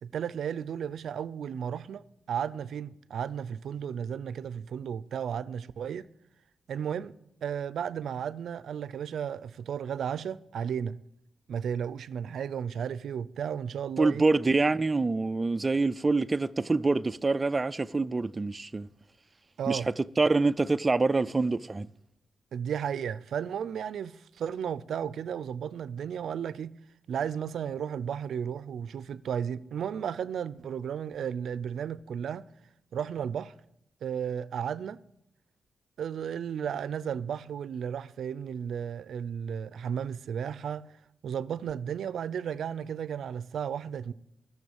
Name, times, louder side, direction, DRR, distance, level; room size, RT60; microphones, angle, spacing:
voice 1, 0.0-6.1 6.7-7.1 7.4-11.0 11.5-14.2 19.6-19.9 22.5-26.8 27.1-32.5 32.9-33.5 34.0-35.0 36.0-40.9 41.2-44.1, right 8 dB, 80° right, 0.5 m, -34 dB
voice 2, 14.0-18.9 19.7-21.9, right 3 dB, 25° right, 0.4 m, -26 dB
14.0 x 6.9 x 8.0 m
wide cardioid pair, 140°, 0 cm